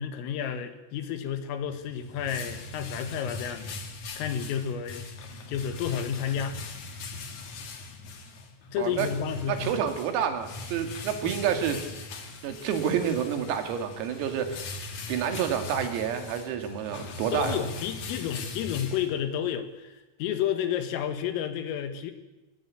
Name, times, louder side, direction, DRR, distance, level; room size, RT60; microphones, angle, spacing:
voice 1, 0.0-3.7 4.2-5.1 5.5-6.6 8.7-9.8 17.3-22.1, left 9 dB, 75° left, 8 dB, 4.3 m, -31 dB
sound 1, 1.7-19.5, left 3 dB, 50° left, 2.7 m, -40 dB
voice 2, 8.8-9.1 9.5-11.8 12.4-14.7 15.1-17.6, right 8 dB, 85° right, 7 dB, 4.9 m, -29 dB
26.0 x 18.5 x 8.5 m, 1.0 s
omnidirectional pair, 6.0 m